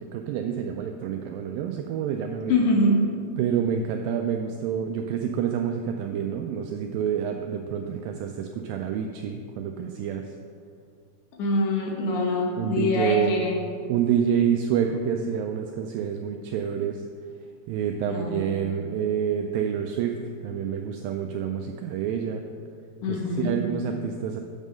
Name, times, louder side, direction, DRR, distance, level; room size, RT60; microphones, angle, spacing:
voice 1, 0.0-2.5 3.4-10.2 12.6-13.5 13.9-17.0 17.7-20.2 20.4-22.4 23.1-24.4, right 8 dB, 90° right, 4 dB, 2.0 m, -28 dB
voice 2, 2.5-3.0 11.4-13.6 18.1-18.4 23.0-23.5, left 2 dB, 65° left, -1 dB, 2.1 m, -24 dB
8.3 x 5.4 x 6.3 m, 2.2 s
omnidirectional pair, 4.6 m